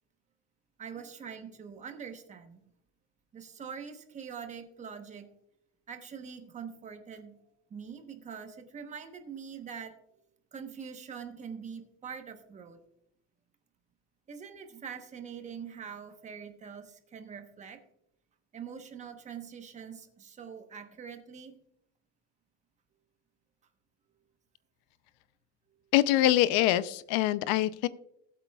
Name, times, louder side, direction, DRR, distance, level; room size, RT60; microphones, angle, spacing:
voice 1, 0.8-2.6 3.3-5.3 5.9-7.4 7.7-9.9 10.5-12.8 14.3-17.8 18.5-21.6, right 7 dB, 20° right, 6 dB, 1.1 m, -44 dB
voice 2, 25.9-27.9, left 14 dB, 75° left, 16 dB, 0.6 m, -24 dB
19.0 x 8.1 x 2.3 m, 0.79 s
cardioid pair, 165°, 32 cm